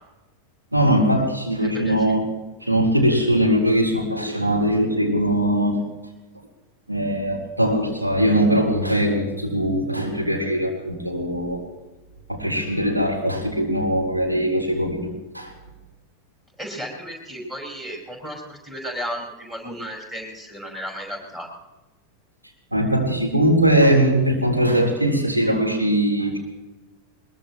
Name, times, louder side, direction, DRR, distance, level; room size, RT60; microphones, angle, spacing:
voice 1, 0.7-2.2 2.7-5.8 6.9-11.6 12.3-15.1 15.3-15.5 22.7-26.4, right 1 dB, 85° right, -1 dB, 3.8 m, -21 dB
voice 2, 1.6-2.2 16.6-21.5, equal, 15° right, 0 dB, 5.1 m, -34 dB
22.0 x 21.5 x 3.1 m, 1.1 s
figure-of-eight pair, 90°, 0 cm